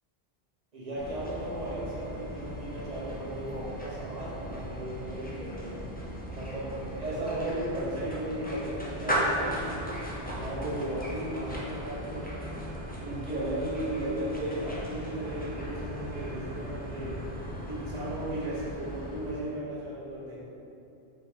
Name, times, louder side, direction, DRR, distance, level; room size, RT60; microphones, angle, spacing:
voice 1, 0.7-5.8 6.3-9.8 10.3-12.5 13.0-17.2 17.7-20.4, right 1 dB, 40° right, -8 dB, 1.1 m, -35 dB
sound 1, 1.0-19.6, equal, 15° left, 0.4 m, -37 dB
4.2 x 2.9 x 3.6 m, 2.9 s
omnidirectional pair, 1.0 m